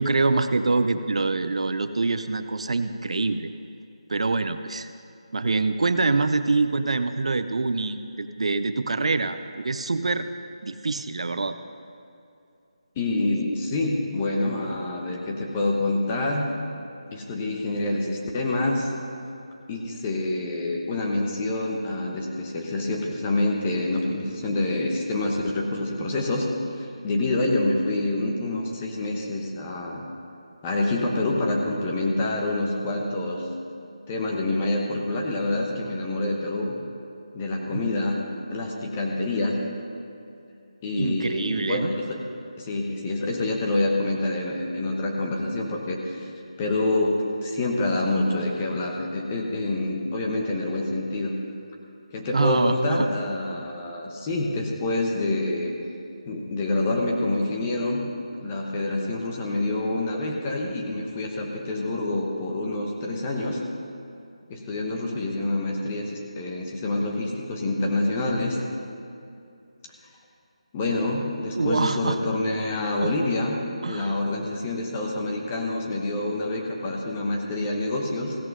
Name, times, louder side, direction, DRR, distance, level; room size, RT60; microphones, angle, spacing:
voice 1, 0.0-3.5 4.1-4.9 5.3-10.3 10.6-11.6 37.7-37.8 41.0-41.9 52.3-53.1 71.5-72.2 73.0-73.1 73.8-74.2, right 3 dB, 65° right, 10 dB, 0.6 m, -25 dB
voice 2, 13.0-16.5 17.1-18.9 19.7-26.5 26.8-30.0 30.6-33.4 34.1-36.7 37.3-38.2 38.5-39.6 40.8-42.2 42.6-46.3 46.6-51.3 52.1-55.7 56.3-58.0 58.4-63.6 64.5-68.6 70.7-73.6 73.9-78.4, left 2 dB, 15° left, 0 dB, 1.0 m, -27 dB
16.5 x 6.1 x 5.4 m, 2.6 s
figure-of-eight pair, 170°, 4 cm